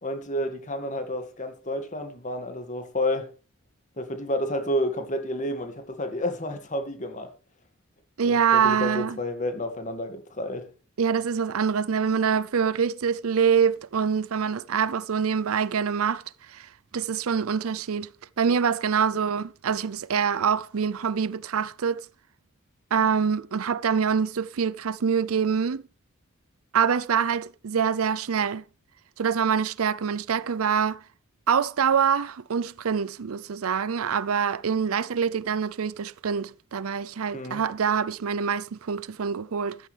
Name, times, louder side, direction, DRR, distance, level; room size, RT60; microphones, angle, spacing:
voice 1, 0.0-3.3 4.0-7.3 8.2-10.7 37.3-37.6, left 1 dB, 35° left, 2.1 m, -30 dB
voice 2, 8.2-9.2 11.0-16.2 16.5-16.7 16.9-18.1 18.4-22.1 22.9-25.8 26.7-28.6 29.2-31.0 31.5-39.8, right 6 dB, 90° right, 0.5 m, -25 dB
14.0 x 12.5 x 3.4 m
head